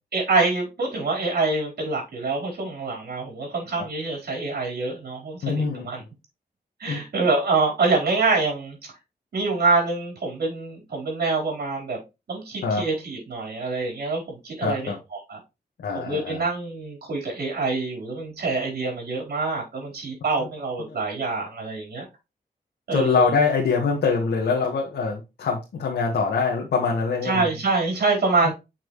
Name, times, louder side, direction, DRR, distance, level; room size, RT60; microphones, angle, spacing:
voice 1, 0.1-6.0 6.8-8.8 9.3-12.0 12.3-15.4 15.9-22.1 22.9-23.3 27.2-28.5, right 3 dB, 70° right, 4.5 m, -25 dB
voice 2, 5.4-5.9 6.9-7.0 12.6-12.8 14.6-15.0 15.8-16.4 22.9-27.5 28.4-28.5, left 5 dB, 90° left, 1.7 m, -24 dB
7.4 x 6.1 x 3.2 m
wide cardioid pair, 115°, 17 cm